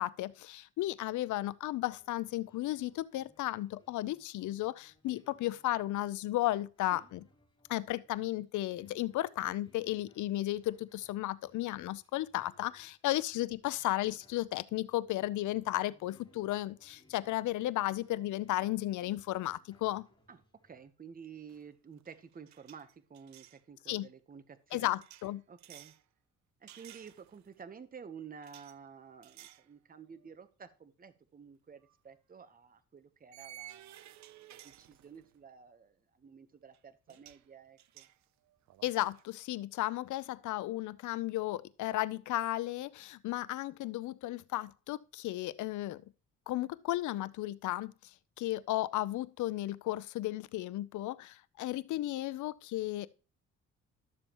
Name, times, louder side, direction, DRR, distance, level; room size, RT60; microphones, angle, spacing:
voice 1, 0.0-7.2 7.7-20.1 23.9-24.1 24.7-25.4 38.8-46.0 46.5-48.1 48.4-53.1, left 16 dB, 75° left, 0.6 m, -34 dB
sound 1, 1.6-20.9, left 1 dB, 15° left, 4.4 m, -67 dB
voice 2, 20.3-24.9 25.5-25.9 26.6-38.1, right 6 dB, 30° right, 0.9 m, -52 dB
sound 2, 21.5-21.7 22.0-23.6 25.0-26.0 26.7-27.5 28.4-28.8 29.2-29.7 30.1-30.3 31.8-31.9 33.3-35.4 36.7-36.8 37.1-37.5 37.8-39.3, right 13 dB, 65° right, 0.6 m, -55 dB
12.0 x 7.0 x 3.0 m
cardioid pair, 90°, 30 cm